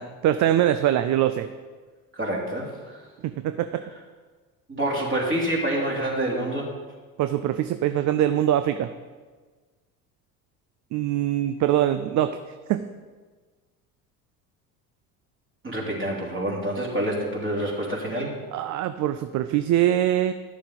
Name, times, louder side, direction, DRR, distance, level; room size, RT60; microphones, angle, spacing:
voice 1, 0.0-1.5 3.2-3.8 7.2-8.9 10.9-12.4 12.7-12.9 18.5-20.3, right 11 dB, 40° right, 10 dB, 0.5 m, -23 dB
voice 2, 2.1-3.1 4.7-6.7 15.6-18.3, right 1 dB, 25° right, -3 dB, 3.1 m, -27 dB
11.0 x 7.0 x 4.0 m, 1.4 s
hypercardioid pair, 60°, 44 cm